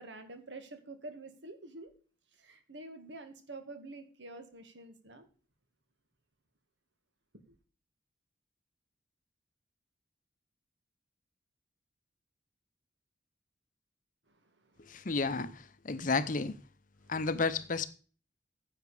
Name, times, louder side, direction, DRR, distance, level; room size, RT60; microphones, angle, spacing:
voice 1, 0.0-1.9 2.4-5.3 7.5-7.6 14.7-14.8, right 2 dB, 75° right, 1.9 m, -47 dB
voice 2, 14.9-16.6 17.1-17.9, left 4 dB, 45° left, 0.8 m, -32 dB
10.5 x 7.9 x 4.9 m
head